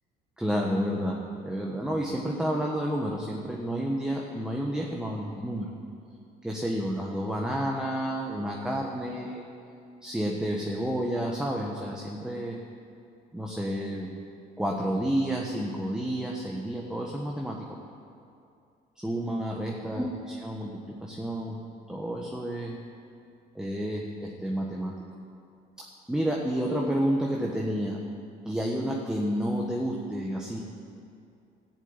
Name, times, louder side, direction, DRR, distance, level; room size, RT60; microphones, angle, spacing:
voice 1, 0.4-5.7 6.4-9.4 10.0-12.6 13.3-14.2 14.6-17.6 19.0-21.6 21.9-22.8 23.5-24.9 25.8-28.0 28.4-30.6, equal, 5° right, -1 dB, 1.3 m, -30 dB
14.0 x 7.3 x 8.9 m, 2.5 s
cardioid pair, 110°, 17 cm